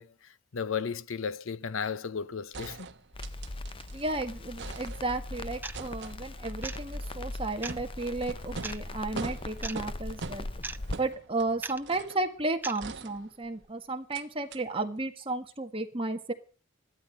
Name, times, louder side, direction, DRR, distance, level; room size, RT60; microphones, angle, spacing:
voice 1, 0.0-2.9, left 6 dB, 75° left, 0.7 m, -34 dB
sound 1, 2.1-2.2 2.5-4.1 4.4-5.3 5.7-12.3 12.8-13.7 14.1-14.2 14.5-14.6, right 3 dB, 55° right, 1.1 m, -43 dB
Crackle, 3.1-11.0, left 2 dB, 25° left, 0.6 m, -39 dB
voice 2, 3.9-10.5 11.0-16.3, right 2 dB, 25° right, 1.7 m, -33 dB
sound 2, 5.6-5.8 6.6-6.8 7.6-7.8 8.6-8.8 9.6-9.8 10.6-10.8 11.6-11.8 12.6-12.8, right 3 dB, 10° right, 0.7 m, -37 dB
14.5 x 12.5 x 6.5 m
head